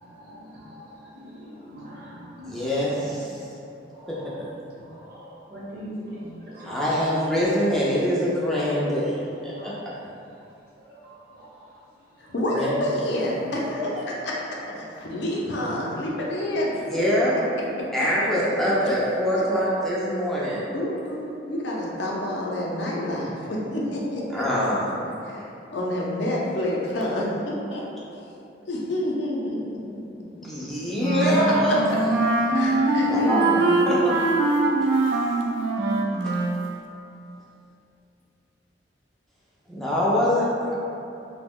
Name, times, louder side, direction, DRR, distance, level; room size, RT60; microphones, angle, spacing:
voice 1, 0.0-3.2 3.9-4.3 4.8-7.8 9.6-9.8 10.8-11.8 12.1-12.3, equal, 55° right, -7 dB, 0.8 m, -42 dB
voice 2, 2.5-3.2 6.6-9.7 12.5-12.8 16.9-17.4 17.9-20.7 24.3-24.8 30.5-31.9 33.1-34.2 39.7-40.8, equal, ahead, -8 dB, 0.3 m, -24 dB
voice 3, 12.3-14.3 14.8-16.7 18.8-19.0 20.7-24.7 25.2-25.4 25.7-27.8 28.7-29.8 31.3-31.4 32.5-33.8, left 1 dB, 65° left, -3 dB, 0.5 m, -28 dB
Wind instrument woodwind instrument, 31.0-36.6, right 2 dB, 80° right, 0.3 m, -22 dB
2.8 x 2.1 x 3.5 m, 2.7 s
head